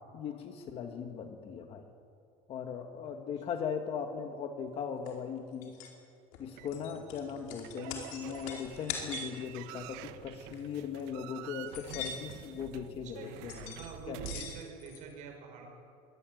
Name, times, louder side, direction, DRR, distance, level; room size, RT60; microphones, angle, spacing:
voice 1, 0.1-1.8 2.5-5.7 6.4-13.8 14.1-14.2, left 7 dB, 35° left, 5 dB, 1.6 m, -39 dB
sound 1, 5.1-5.2 5.6-5.9 6.3-9.4 10.4-10.6 11.0-11.1 11.6-12.4 13.5-13.9 14.2-15.0, left 7 dB, 65° left, 4.8 m, -43 dB
sound 2, 6.6-14.6, right 14 dB, 85° right, 1.2 m, -47 dB
voice 2, 13.6-15.7, right 5 dB, 50° right, 3 dB, 6.1 m, -46 dB
24.5 x 21.0 x 9.2 m, 2.5 s
cardioid pair, 180°, 16 cm